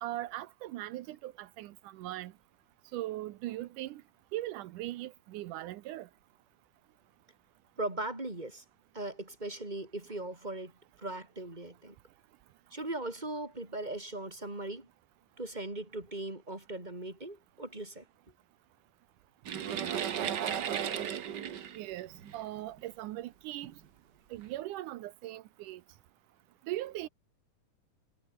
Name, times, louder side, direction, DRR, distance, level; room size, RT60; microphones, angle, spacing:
voice 1, 0.0-2.3 2.9-4.0 4.3-6.1 20.7-20.8 21.7-23.7 24.3-25.8 26.7-27.1, right 15 dB, 80° right, 2.3 m, -39 dB
voice 2, 7.8-8.6 8.9-10.7 11.0-12.0 12.7-14.9 15.4-18.1, right 2 dB, 15° right, 3.8 m, -39 dB
sound 1, 19.4-22.8 23.6-23.7 24.3-24.5, right 9 dB, 65° right, 1.0 m, -35 dB
omnidirectional pair, 3.7 m